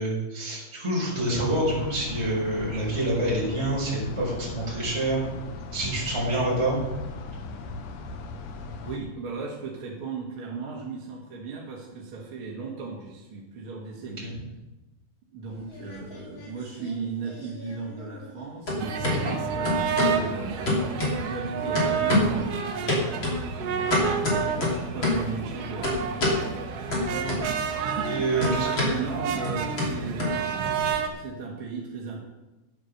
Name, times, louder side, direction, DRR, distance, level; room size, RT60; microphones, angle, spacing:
voice 1, 0.0-5.2 5.7-6.8 14.2-14.3 19.0-19.3 27.1-27.3 28.0-28.7, right 1 dB, 5° right, -6 dB, 4.4 m, -27 dB
sound 1, 1.4-9.0, left 3 dB, 70° left, 2.4 m, -38 dB
voice 2, 8.8-14.3 15.3-20.8 21.2-22.9 23.7-24.2 24.6-26.3 28.3-32.2, right 4 dB, 45° right, -3 dB, 2.0 m, -36 dB
sound 2, 15.5-16.5 16.8-18.4 18.7-19.2 19.7-20.2 20.7-21.5 21.8-22.4 22.9-25.3 25.8-26.4 26.9-27.7 28.0-30.9, left 2 dB, 35° left, 3.2 m, -27 dB
sound 3, 18.8-31.1, right 7 dB, 70° right, 1.5 m, -30 dB
9.6 x 9.6 x 6.6 m, 1.0 s
omnidirectional pair, 4.2 m